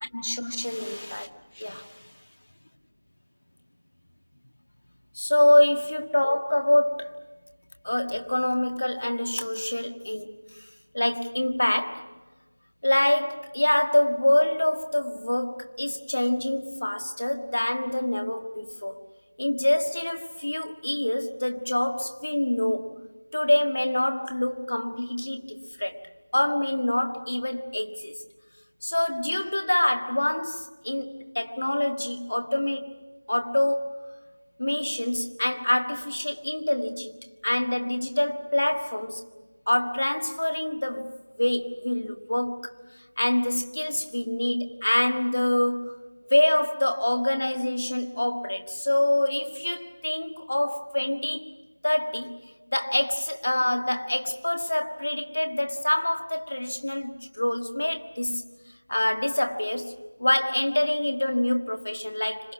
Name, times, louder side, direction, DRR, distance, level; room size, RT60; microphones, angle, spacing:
voice 1, 0.0-1.3 1.5-2.1 5.1-7.2 7.8-10.7 10.9-12.1 12.8-19.0 19.4-22.9 23.3-28.1 28.8-34.0 34.6-37.2 37.4-39.2 39.7-42.8 43.2-46.0 46.3-51.5 51.8-52.4 52.7-58.4 58.9-62.5, left 1 dB, 45° left, 1.6 m, -26 dB
28.5 x 26.5 x 6.0 m
figure-of-eight pair, 175°, 0 cm